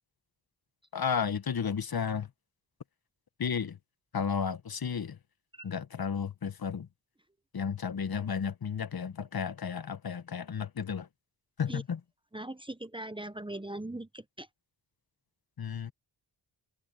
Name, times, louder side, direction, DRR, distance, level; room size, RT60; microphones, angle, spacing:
voice 1, 0.9-2.3 3.4-3.8 4.1-5.2 5.6-6.9 7.5-11.1 11.6-12.0 15.6-15.9, left 6 dB, 55° left, 1.5 m, -33 dB
voice 2, 12.3-14.5, right 1 dB, 10° right, 1.1 m, -40 dB
cardioid pair, 50°, 44 cm